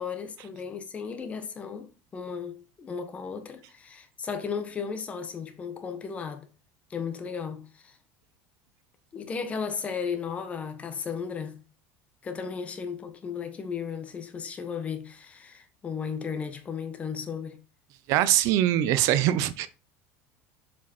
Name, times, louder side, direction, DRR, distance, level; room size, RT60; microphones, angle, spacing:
voice 1, 0.0-1.9 2.1-6.5 6.9-8.0 9.1-11.6 12.2-17.6, left 6 dB, 20° left, 1.2 m, -35 dB
voice 2, 18.1-19.7, right 12 dB, 55° right, 0.6 m, -22 dB
7.2 x 5.1 x 4.3 m
cardioid pair, 160°, 7 cm